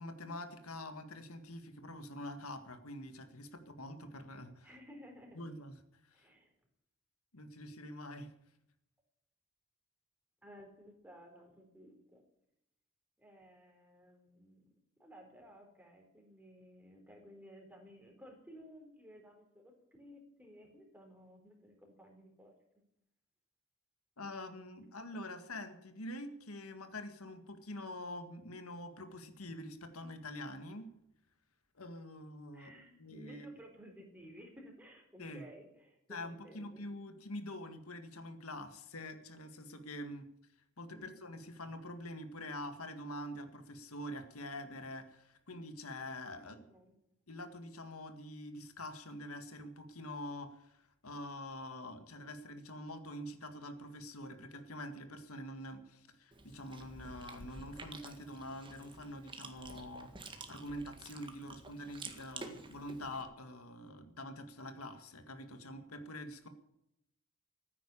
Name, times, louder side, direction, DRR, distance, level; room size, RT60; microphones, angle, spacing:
voice 1, 0.0-4.7 5.4-5.7 6.1-6.2 7.3-8.3 24.2-30.9 31.8-32.7 33.0-33.5 35.2-35.5 36.1-40.3 40.8-46.6 47.3-60.1 60.5-66.5, left 1 dB, 90° left, 8 dB, 1.9 m, -45 dB
voice 2, 4.6-5.4 6.1-6.5 10.4-12.2 13.2-14.6 15.0-22.5 32.5-36.8 40.9-41.3 46.4-47.0, equal, 10° right, 2 dB, 4.1 m, -56 dB
Chewing mastication, 56.3-63.2, right 3 dB, 25° right, 1.8 m, -50 dB
15.0 x 9.7 x 8.6 m, 0.80 s
head